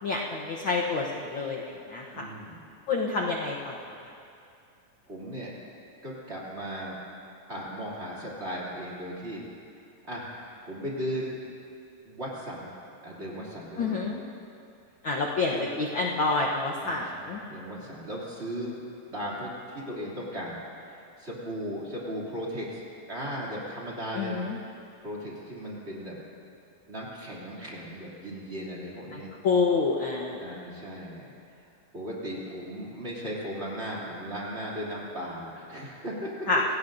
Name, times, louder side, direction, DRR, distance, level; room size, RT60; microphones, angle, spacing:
voice 1, 0.0-2.2 2.9-3.8 13.8-14.2 15.0-17.4 24.1-24.6 29.4-30.4 36.5-36.6, left 4 dB, 75° left, -2 dB, 1.1 m, -28 dB
voice 2, 2.1-2.6 5.1-5.5 6.0-6.9 7.5-9.4 10.0-11.4 12.1-12.7 13.0-14.1 15.5-15.7 16.8-18.8 19.1-20.6 20.8-24.4 25.0-26.2 26.9-29.3 30.4-31.3 31.9-36.5, equal, 20° right, -6 dB, 2.8 m, -37 dB
27.0 x 17.0 x 2.7 m, 2.6 s
omnidirectional pair, 3.7 m